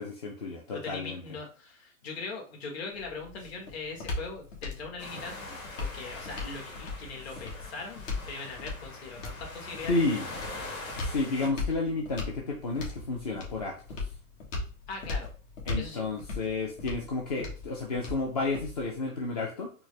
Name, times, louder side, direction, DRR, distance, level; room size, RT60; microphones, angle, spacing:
voice 1, 0.0-1.2 9.9-10.3 11.0-14.0 15.7-19.7, left 3 dB, 30° left, -1 dB, 0.4 m, -31 dB
voice 2, 0.7-10.5 14.9-15.3 15.8-16.1, left 4 dB, 50° left, 0 dB, 1.4 m, -41 dB
sound 1, 2.9-19.0, left 3 dB, 65° left, 1.5 m, -39 dB
sound 2, 5.0-11.5, left 2 dB, 85° left, 1.5 m, -43 dB
4.4 x 2.1 x 3.1 m, 0.37 s
hypercardioid pair, 155°, 41 cm